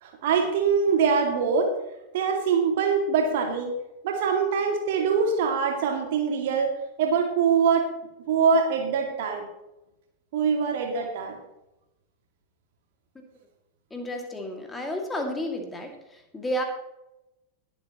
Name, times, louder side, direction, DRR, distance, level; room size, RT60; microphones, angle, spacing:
voice 1, 0.0-1.8 2.1-3.7 4.0-6.7 7.0-7.9 8.3-9.5 10.3-11.4, right 6 dB, 55° right, 3 dB, 2.3 m, -23 dB
voice 2, 13.9-16.6, equal, 10° left, 3 dB, 2.4 m, -32 dB
21.0 x 7.9 x 3.1 m, 0.91 s
figure-of-eight pair, 90°, 0 cm